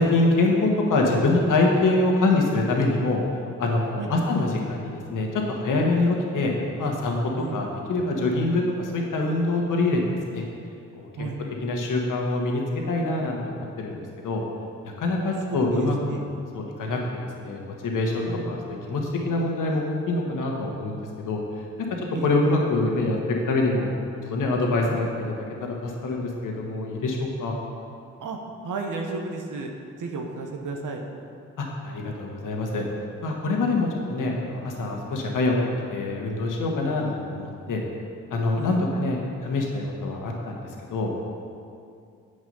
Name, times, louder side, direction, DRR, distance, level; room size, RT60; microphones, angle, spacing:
voice 1, 0.0-3.2 3.6-6.5 6.8-10.4 11.0-11.3 11.6-14.4 14.8-16.3 16.5-18.6 18.9-21.6 22.0-23.9 24.3-25.3 25.6-27.6 31.6-32.8 33.2-37.8 38.3-41.1, left 2 dB, 60° left, 0 dB, 1.5 m, -25 dB
voice 2, 15.2-16.2 18.2-18.6 22.1-22.4 28.2-31.0 38.6-38.8, right 3 dB, 60° right, 2 dB, 1.1 m, -33 dB
8.1 x 6.5 x 5.4 m, 2.4 s
hypercardioid pair, 45°, 35 cm